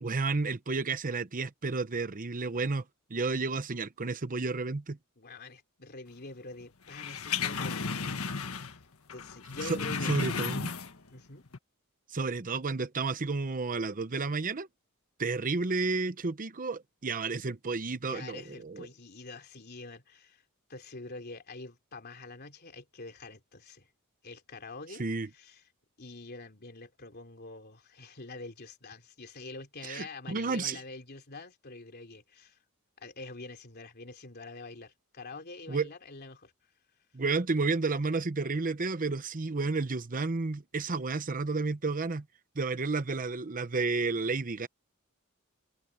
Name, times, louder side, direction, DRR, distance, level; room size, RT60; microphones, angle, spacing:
voice 1, 0.0-2.8 3.1-5.0 9.7-9.8 10.1-10.7 12.1-14.7 15.2-18.9 25.0-25.3 29.8-30.8 35.7-35.9 37.1-42.2 42.6-44.7, right 3 dB, 40° right, 0.8 m, -31 dB
voice 2, 5.2-8.8 9.1-10.3 11.1-11.5 18.1-20.4 20.7-23.9 24.2-25.0 25.3-25.6 26.0-32.6 33.0-36.5, left 3 dB, 45° left, 3.3 m, -46 dB
sound 1, 6.9-8.8 9.1-11.1 11.5-11.6, left 5 dB, 75° left, 1.6 m, -34 dB
head